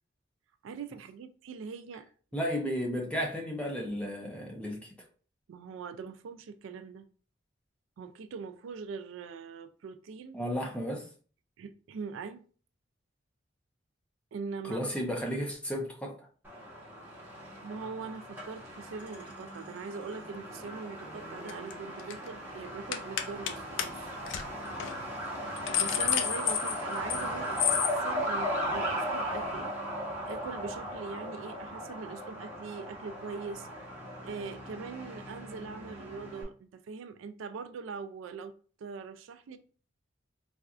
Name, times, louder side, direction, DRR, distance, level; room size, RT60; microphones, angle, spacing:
voice 1, 0.6-2.0 5.5-7.1 8.0-10.4 11.6-12.4 14.3-14.8 17.6-24.2 25.8-29.7 30.3-33.7 34.2-38.5 38.8-39.6, right 5 dB, 80° right, 0.3 m, -42 dB
voice 2, 2.3-4.9 10.3-11.1 14.6-16.3, equal, 5° left, 0.6 m, -33 dB
Truck, 16.4-36.4, equal, 10° right, 1.0 m, -37 dB
sound 1, 21.5-21.7 22.0-22.3 22.9-23.5 23.8-23.9 24.3-24.4 24.8-24.9 25.3-27.3 27.6-27.9, left 9 dB, 70° left, 0.4 m, -30 dB
4.1 x 2.4 x 2.4 m
head